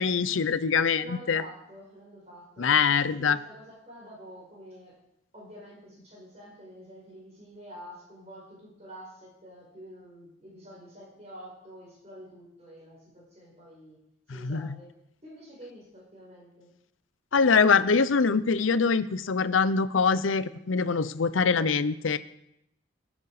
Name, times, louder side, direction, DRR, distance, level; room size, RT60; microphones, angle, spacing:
voice 1, 0.0-1.4 2.6-3.4 14.4-14.7 17.3-22.2, left 5 dB, 90° left, 14 dB, 0.6 m, -24 dB
voice 2, 1.0-5.0 5.3-14.0 14.3-14.9 15.2-16.7, equal, 35° right, -3 dB, 5.1 m, -48 dB
19.5 x 7.5 x 4.9 m, 0.83 s
head